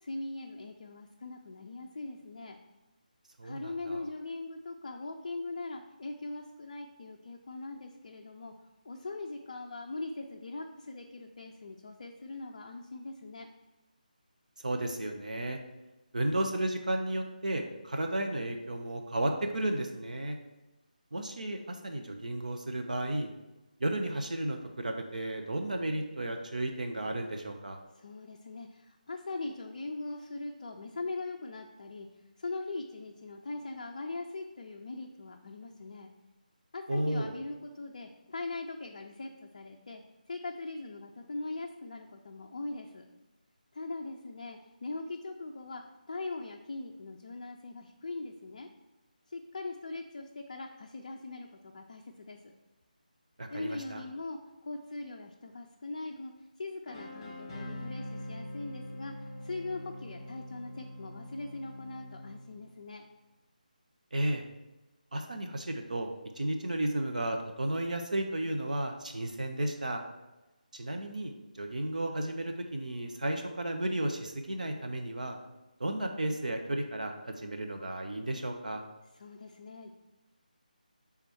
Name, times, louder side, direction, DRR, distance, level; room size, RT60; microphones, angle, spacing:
voice 1, 0.0-2.6 3.4-8.5 8.8-13.5 27.9-32.1 32.4-36.1 36.7-40.0 40.3-43.1 43.7-45.8 46.1-48.7 49.3-52.4 53.5-56.3 56.6-59.1 59.4-63.1 79.1-79.9, left 2 dB, 40° left, 2 dB, 0.4 m, -41 dB
voice 2, 3.4-4.0 14.6-15.6 16.1-20.4 21.1-23.3 23.8-27.8 36.9-37.3 53.4-54.0 64.1-64.4 65.1-66.1 66.4-70.0 70.7-75.4 75.8-78.8, right 1 dB, 60° right, 4 dB, 0.6 m, -33 dB
sound 1, 56.9-62.8, left 1 dB, 10° left, 1.1 m, -43 dB
6.7 x 3.5 x 4.4 m, 1.1 s
figure-of-eight pair, 155°, 5 cm